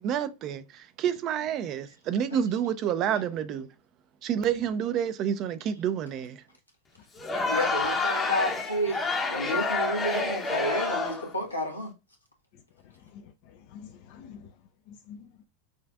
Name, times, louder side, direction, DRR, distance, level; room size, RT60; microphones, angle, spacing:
voice 1, 0.0-3.7 4.2-6.4, right 9 dB, 35° right, 0.4 m, -29 dB
Crowd, 7.2-11.3, left 3 dB, 15° left, 0.7 m, -28 dB
voice 2, 7.5-11.9, equal, 85° left, 1.2 m, -30 dB
voice 3, 12.8-14.5 14.9-15.3, left 7 dB, 45° left, 0.4 m, -48 dB
6.1 x 2.4 x 2.3 m
figure-of-eight pair, 90°, 0 cm